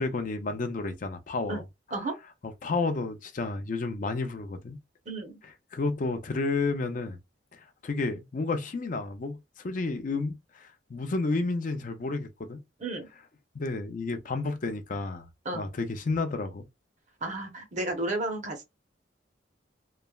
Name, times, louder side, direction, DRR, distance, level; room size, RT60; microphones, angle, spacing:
voice 1, 0.0-1.6 2.4-4.8 5.4-7.2 7.5-9.4 9.6-12.6 13.5-16.6, left 3 dB, 45° left, 0.4 m, -31 dB
voice 2, 17.2-18.7, right 2 dB, 40° right, 0.7 m, -32 dB
3.1 x 2.0 x 2.2 m
head